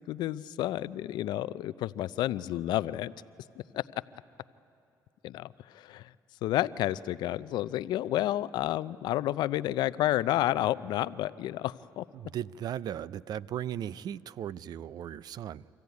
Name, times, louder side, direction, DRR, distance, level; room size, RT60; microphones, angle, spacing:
voice 1, 0.1-3.1 3.7-3.8 5.2-6.1 6.4-12.0, left 14 dB, 80° left, 0.5 m, -30 dB
voice 2, 12.1-15.7, right 10 dB, 65° right, 0.4 m, -37 dB
25.0 x 15.0 x 9.4 m
cardioid pair, 90°, 7 cm